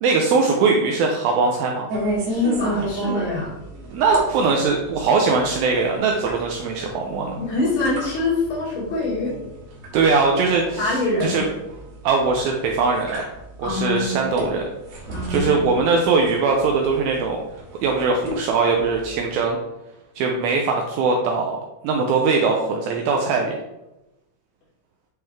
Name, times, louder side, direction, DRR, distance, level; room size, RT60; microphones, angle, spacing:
voice 1, 0.0-1.9 3.9-7.4 9.9-11.5 12.0-13.3 13.6-14.7 15.3-17.4 17.8-19.6 20.2-21.6 21.8-23.5, right 4 dB, 90° right, 1 dB, 2.1 m, -21 dB
sound 1, 1.9-19.5, equal, 70° right, 3.8 m, -31 dB
voice 2, 2.3-3.5 7.4-9.3 10.8-11.4 13.6-14.2 15.1-15.6, left 3 dB, 80° left, -7 dB, 4.8 m, -25 dB
10.5 x 3.7 x 3.5 m, 0.96 s
omnidirectional pair, 4.8 m